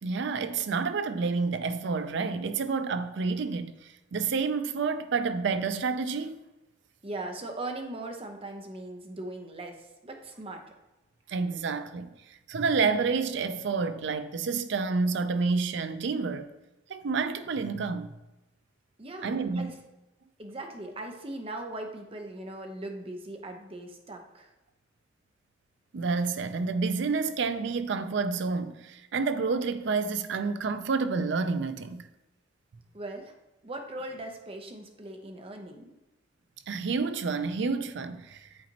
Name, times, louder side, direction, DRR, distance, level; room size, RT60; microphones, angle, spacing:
voice 1, 0.0-6.4 11.3-16.5 16.9-18.1 19.2-19.7 25.9-32.1 36.7-38.5, right 4 dB, 65° right, 0.4 m, -29 dB
voice 2, 7.0-10.6 19.0-19.7 20.4-24.5 32.9-33.3 33.6-35.9, right 2 dB, 30° right, 0.7 m, -39 dB
8.7 x 4.1 x 2.9 m
head